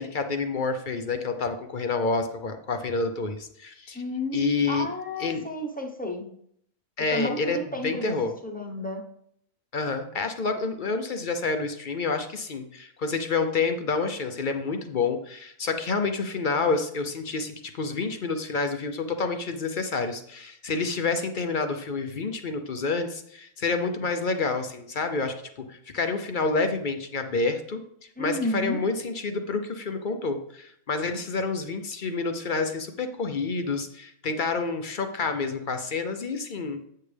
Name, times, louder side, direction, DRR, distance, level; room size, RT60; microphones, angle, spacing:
voice 1, 0.0-4.0 4.3-4.9 5.2-5.4 7.0-7.6 7.8-8.3 9.7-25.3 25.7-27.8 28.2-36.8, left 4 dB, 50° left, 7 dB, 0.6 m, -28 dB
voice 2, 3.9-6.2 7.1-9.0 28.2-28.8, equal, 10° left, 1 dB, 0.8 m, -31 dB
8.4 x 6.6 x 3.3 m, 0.69 s
omnidirectional pair, 1.4 m